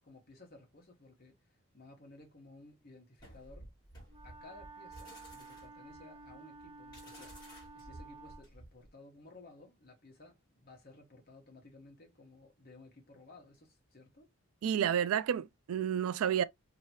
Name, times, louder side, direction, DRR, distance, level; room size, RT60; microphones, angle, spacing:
voice 1, 0.0-3.7 4.2-7.4 7.7-14.3, left 2 dB, 40° left, 1.2 m, -57 dB
sound 1, 3.2-8.9, equal, 15° left, 1.8 m, -54 dB
Wind instrument woodwind instrument, 4.1-8.5, right 3 dB, 25° right, 0.5 m, -52 dB
voice 2, 14.6-16.4, right 9 dB, 80° right, 0.3 m, -30 dB
2.9 x 2.8 x 2.8 m
head